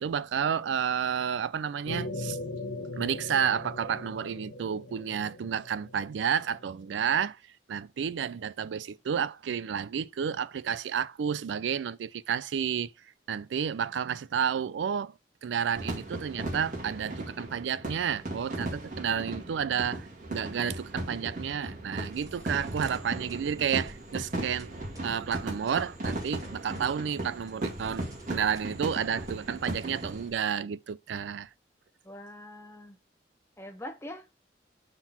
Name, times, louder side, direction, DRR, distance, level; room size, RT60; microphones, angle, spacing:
voice 1, 0.0-2.4 3.0-7.4 7.7-12.9 13.3-15.1 15.4-24.7 25.0-31.5, right 8 dB, 80° right, 0.3 m, -31 dB
sound 1, 1.9-6.9, left 2 dB, 80° left, 0.7 m, -39 dB
sound 2, 15.7-30.3, right 1 dB, 45° right, 2.0 m, -37 dB
sound 3, 22.1-30.5, equal, 20° right, 1.4 m, -50 dB
voice 2, 32.0-33.0 33.6-34.4, left 1 dB, 15° left, 0.8 m, -43 dB
4.6 x 3.8 x 5.4 m
head